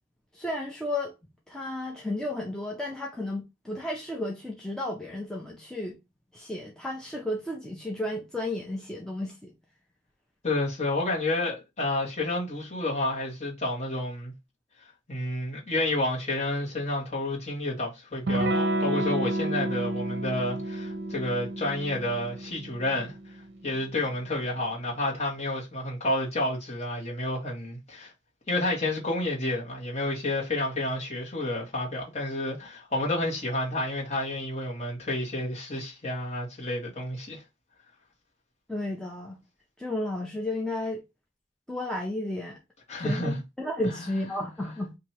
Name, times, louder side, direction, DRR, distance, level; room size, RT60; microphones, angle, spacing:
voice 1, 0.3-1.1 1.5-6.0 6.3-9.5 38.7-39.4 39.8-41.0 41.7-42.6 43.0-44.9, left 1 dB, 5° left, 0.5 m, -33 dB
voice 2, 10.4-14.3 15.1-23.4 23.6-28.1 28.5-37.4 42.9-43.4 43.8-44.0, left 1 dB, 35° left, 1.4 m, -30 dB
Electric guitar / Strum, 18.3-23.6, right 1 dB, 60° right, 0.6 m, -30 dB
2.9 x 2.6 x 4.3 m
head